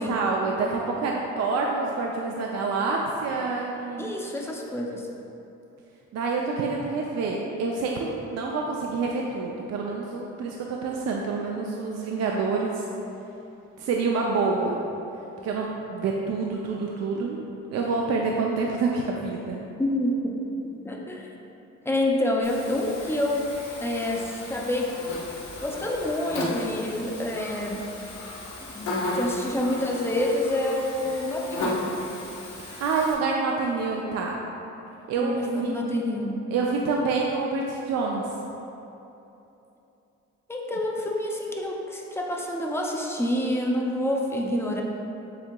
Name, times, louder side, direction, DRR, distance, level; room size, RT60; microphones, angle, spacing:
voice 1, 0.0-4.1 6.1-12.8 13.8-14.8 15.4-17.4 17.7-19.6 32.6-34.4 35.1-35.8 36.5-38.2, right 4 dB, 60° right, -1 dB, 0.4 m, -27 dB
voice 2, 4.0-5.0 19.8-20.3 20.8-21.3 21.9-23.5 23.8-24.9 25.6-27.8 28.7-32.0 34.3-34.5 35.2-36.4 40.5-44.8, left 1 dB, 10° left, -1 dB, 0.5 m, -27 dB
Buzz, 22.4-33.1, left 1 dB, 75° left, 1.0 m, -35 dB
7.2 x 2.8 x 2.2 m, 2.9 s
cardioid pair, 90°, 30 cm